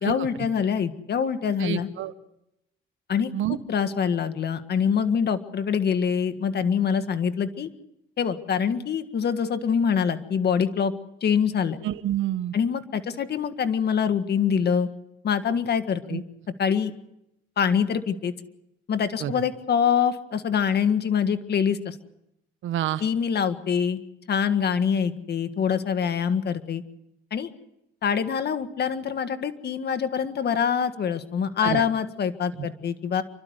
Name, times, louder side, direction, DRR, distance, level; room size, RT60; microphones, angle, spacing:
voice 1, 0.0-1.9 3.1-3.3 3.7-7.7 8.2-10.9 11.2-11.8 12.5-14.9 15.2-16.2 16.6-16.9 17.6-18.3 18.9-21.9 23.0-24.0 24.3-26.8 27.3-27.5 28.0-33.2, left 7 dB, 55° left, 10 dB, 1.7 m, -25 dB
voice 2, 1.6-2.1 3.3-3.6 11.8-12.5 16.1-16.2 19.2-19.3 22.6-23.0 31.6-31.8 32.6-32.7, right 12 dB, 80° right, 12 dB, 1.2 m, -28 dB
29.5 x 12.5 x 8.1 m, 0.85 s
cardioid pair, 90°, 20 cm